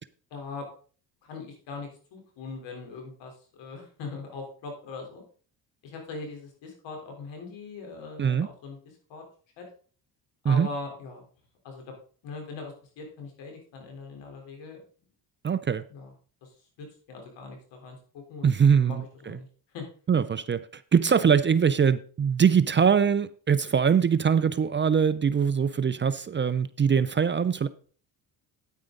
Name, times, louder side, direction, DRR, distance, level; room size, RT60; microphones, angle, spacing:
voice 1, 0.3-0.7 1.2-5.2 5.8-8.8 9.1-9.2 9.6-9.7 10.4-11.2 11.6-11.8 12.2-14.8 15.9-16.1 16.4-19.5 19.7-19.9, left 4 dB, 80° left, 3.7 m, -41 dB
voice 2, 15.4-15.8 18.4-19.4 20.1-27.7, right 7 dB, 25° right, 0.5 m, -23 dB
9.3 x 9.2 x 3.8 m
cardioid pair, 90°, 43 cm